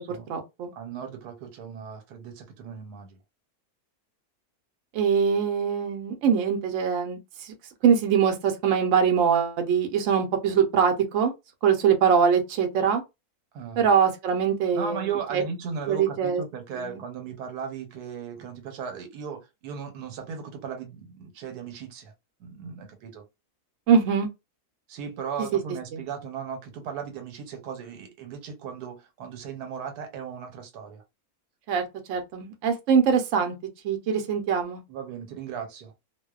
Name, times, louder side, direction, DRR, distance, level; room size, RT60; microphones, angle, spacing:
voice 1, 0.0-0.7 4.9-7.5 7.8-11.3 11.6-13.0 13.8-15.4 15.9-16.4 16.7-17.0 23.9-24.3 25.5-25.6 25.9-26.0 31.7-33.5 33.8-34.8, right 7 dB, 65° right, 0.9 m, -23 dB
voice 2, 0.7-3.2 13.5-13.9 14.7-22.1 22.4-23.2 24.9-31.0 34.9-35.9, right 7 dB, 85° right, 1.2 m, -37 dB
2.6 x 2.1 x 2.2 m
omnidirectional pair, 1.6 m